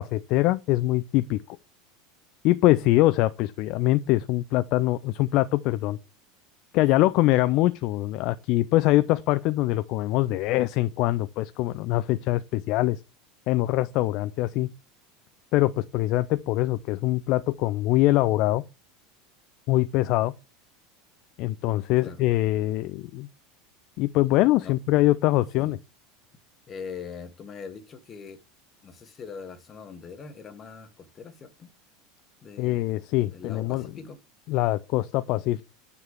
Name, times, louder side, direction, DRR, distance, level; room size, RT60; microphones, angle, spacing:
voice 1, 0.0-1.6 2.4-6.0 6.7-13.0 13.5-14.7 15.5-18.6 19.7-20.3 21.4-23.3 24.0-25.8 32.6-33.9 34.5-35.6, left 17 dB, 50° left, 0.4 m, -23 dB
voice 2, 24.4-24.8 25.6-25.8 26.7-28.4 28.8-31.7 32.4-32.8 33.3-34.2, left 5 dB, 30° left, 1.5 m, -42 dB
9.5 x 6.7 x 3.2 m
figure-of-eight pair, 75°, 0 cm